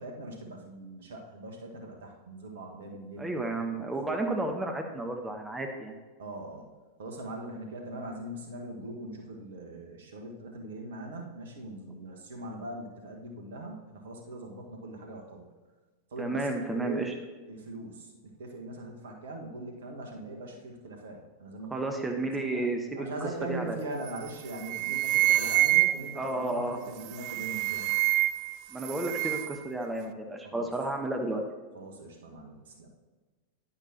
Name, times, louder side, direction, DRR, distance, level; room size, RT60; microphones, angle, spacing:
voice 1, 0.0-3.3 3.6-3.9 6.2-6.7 7.0-15.5 16.1-22.6 23.0-28.0 30.4-30.7 31.7-32.9, right 1 dB, 60° right, 1 dB, 1.6 m, -41 dB
voice 2, 3.2-6.0 16.2-17.1 21.7-23.1 23.5-23.8 26.1-26.8 28.7-31.4, right 2 dB, 10° right, 3 dB, 1.1 m, -32 dB
sound 1, 24.1-24.3 24.6-26.2 27.1-28.5 28.8-29.6, right 16 dB, 45° right, 0.4 m, -26 dB
11.0 x 10.5 x 2.9 m, 1.3 s
figure-of-eight pair, 90°, 0 cm